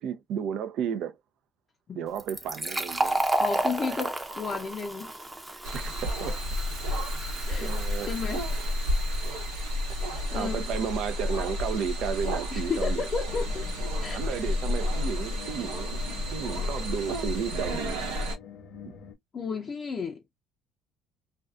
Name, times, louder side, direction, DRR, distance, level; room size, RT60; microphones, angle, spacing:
voice 1, 0.0-1.2 1.9-3.3 3.9-4.0 5.5-6.4 7.6-8.1 10.3-13.1 14.1-16.0 16.3-18.1 18.8-18.9, right 7 dB, 65° right, 0.5 m, -33 dB
Fill (with liquid), 2.1-9.5, right 2 dB, 15° right, 0.7 m, -32 dB
voice 2, 3.4-5.1 7.5-7.7 8.1-8.5 10.3-10.7 12.5-13.7 14.0-14.2 19.3-20.2, left 5 dB, 40° left, 0.5 m, -32 dB
sound 1, 5.6-18.4, left 1 dB, 90° right, 1.1 m, -31 dB
sound 2, 13.3-19.1, left 7 dB, 70° left, 0.9 m, -45 dB
2.5 x 2.3 x 2.3 m
hypercardioid pair, 70°, 0 cm